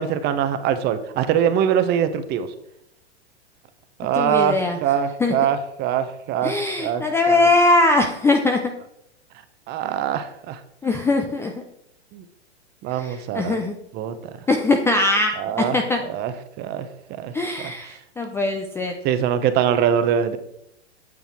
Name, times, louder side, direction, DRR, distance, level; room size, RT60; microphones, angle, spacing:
voice 1, 0.0-2.5 4.0-7.5 9.7-10.6 12.1-12.2 12.8-13.6 13.9-14.3 15.4-15.8 16.1-17.7 19.0-20.4, right 9 dB, 30° right, 10 dB, 0.9 m, -23 dB
voice 2, 4.2-4.8 5.2-5.3 6.4-8.6 10.8-11.5 12.9-13.8 14.5-16.0 17.3-18.9, left 2 dB, 10° left, 4 dB, 0.4 m, -21 dB
8.4 x 6.7 x 4.4 m, 0.76 s
hypercardioid pair, 120°, 34 cm